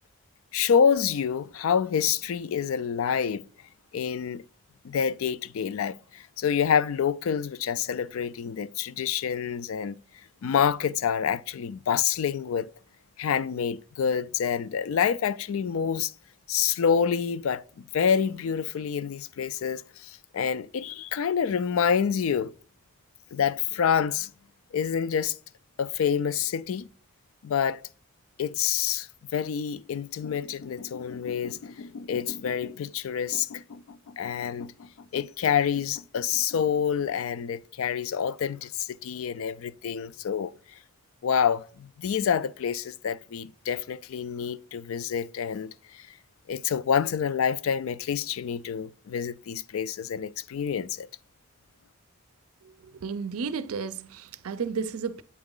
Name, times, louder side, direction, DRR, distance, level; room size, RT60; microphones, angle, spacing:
voice 1, 0.5-3.4 3.9-4.4 4.8-10.0 10.4-12.7 13.2-16.1 16.5-22.5 23.3-24.3 24.7-25.4 25.8-26.9 27.4-27.9 28.4-40.8 41.2-46.1 46.5-51.1, left 7 dB, 75° left, 0.3 m, -27 dB
voice 2, 53.0-55.2, right 5 dB, 85° right, 0.5 m, -32 dB
8.5 x 3.9 x 3.7 m
head